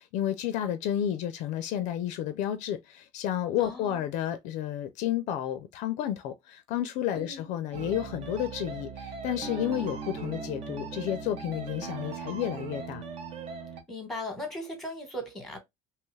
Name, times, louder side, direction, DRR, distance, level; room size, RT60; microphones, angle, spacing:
voice 1, 0.0-13.0, left 11 dB, 65° left, 0.4 m, -31 dB
voice 2, 3.6-4.0 7.1-7.5 13.9-15.6, left 1 dB, 5° left, 1.1 m, -38 dB
sound 1, 7.7-13.8, right 5 dB, 45° right, 0.7 m, -39 dB
2.9 x 2.3 x 3.1 m
cardioid pair, 130°, 14 cm